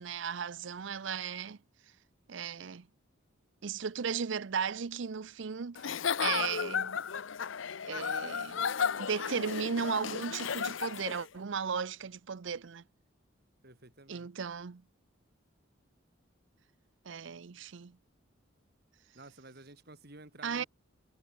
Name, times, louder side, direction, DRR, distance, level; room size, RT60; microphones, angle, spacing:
voice 1, 0.0-1.6 2.3-2.9 3.6-5.9 6.2-7.0 7.8-8.7 9.0-12.8 14.1-14.8 17.0-18.0 20.4-20.6, right 6 dB, 70° right, 0.6 m, -36 dB
Giggle / Chuckle chortle, 5.7-11.3, left 6 dB, 75° left, 0.7 m, -34 dB
voice 2, 13.6-14.3 19.1-20.7, right 2 dB, 55° right, 4.4 m, -52 dB
head